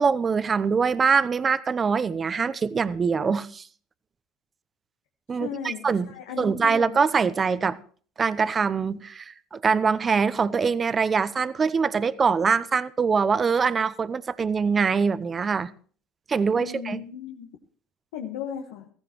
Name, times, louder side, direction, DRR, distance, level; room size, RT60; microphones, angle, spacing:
voice 1, 0.0-3.7 5.3-6.1 6.4-7.8 8.2-15.7 16.3-17.0, right 5 dB, 35° right, 0.8 m, -23 dB
voice 2, 5.3-7.0 16.6-17.5 18.1-18.9, left 8 dB, 85° left, 1.3 m, -36 dB
16.0 x 14.5 x 3.0 m
supercardioid pair, 80°, 0 cm